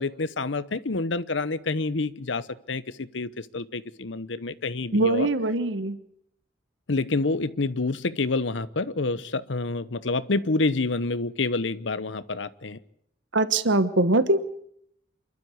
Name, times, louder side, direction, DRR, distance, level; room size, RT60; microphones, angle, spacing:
voice 1, 0.0-5.3 6.9-12.8, left 3 dB, 75° left, 15 dB, 0.9 m, -28 dB
voice 2, 4.9-6.0 13.3-14.4, right 2 dB, 75° right, 12 dB, 1.3 m, -22 dB
28.0 x 12.5 x 9.7 m, 0.71 s
head